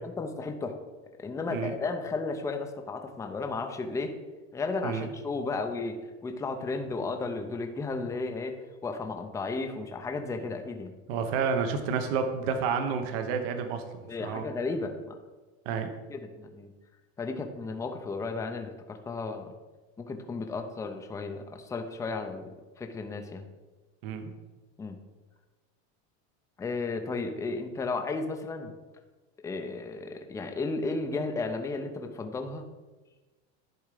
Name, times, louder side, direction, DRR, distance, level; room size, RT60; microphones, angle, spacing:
voice 1, 0.0-0.8 1.2-4.1 4.5-6.0 6.2-8.5 8.8-10.9 14.1-15.2 16.1-16.7 17.2-19.5 20.0-22.4 22.8-23.4 24.8-25.0 26.6-28.7 29.4-32.6, left 3 dB, 10° left, 5 dB, 0.5 m, -34 dB
voice 2, 11.1-14.4 15.6-15.9 24.0-24.3, right 6 dB, 65° right, 7 dB, 1.0 m, -30 dB
10.5 x 3.6 x 4.9 m, 1.2 s
supercardioid pair, 140°, 33 cm